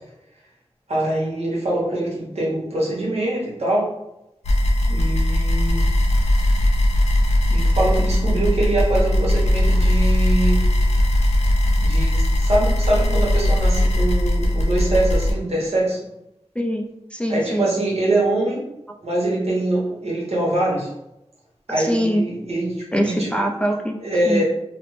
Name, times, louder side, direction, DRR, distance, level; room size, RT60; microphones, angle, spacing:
voice 1, 0.9-3.9 4.9-5.8 7.5-10.6 11.8-16.0 17.3-18.6 19.0-20.9 21.7-23.3 24.0-24.4, right 1 dB, 75° right, -5 dB, 1.0 m, -23 dB
sound 1, 4.4-15.3, left 1 dB, 90° left, 0.5 m, -19 dB
voice 2, 16.6-17.8 21.8-22.2 22.9-24.0 24.3-24.4, equal, 10° left, 0 dB, 0.3 m, -23 dB
2.5 x 2.1 x 3.0 m, 0.87 s
wide cardioid pair, 65°, 11 cm